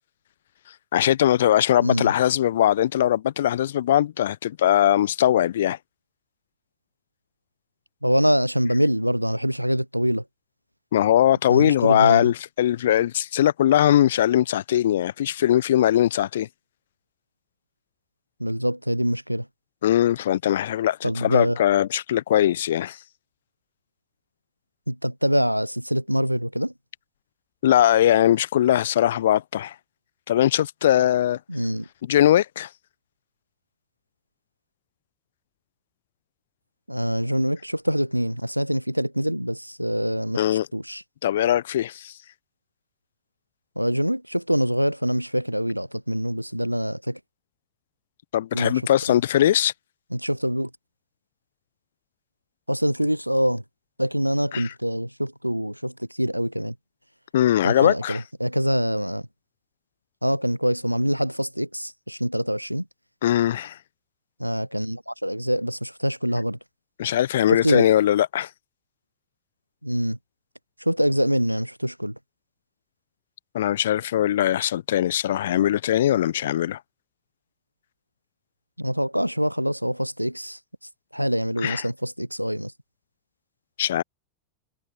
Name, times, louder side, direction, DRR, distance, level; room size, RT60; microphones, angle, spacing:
voice 1, 0.9-5.8 10.9-16.5 19.8-23.0 27.6-29.7 30.3-31.4 32.1-32.7 40.4-40.7 41.2-42.1 48.3-49.7 54.5-54.7 57.3-58.2 63.2-63.8 67.0-68.5 73.5-76.8 81.6-81.8 83.8-84.0, left 11 dB, 60° left, 1.3 m, -20 dB
voice 2, 1.8-2.1 8.0-10.2 11.5-12.3 18.4-19.5 21.0-21.6 24.9-26.7 31.5-31.9 36.9-40.4 40.7-41.0 43.8-47.2 48.5-48.8 50.1-50.7 52.7-53.6 54.0-56.7 57.6-59.3 60.2-62.9 64.4-66.6 67.5-67.9 69.8-70.2 70.8-72.2 78.8-80.6 81.1-82.7, equal, 90° right, 0.4 m, -25 dB
figure-of-eight pair, 90°, 0 cm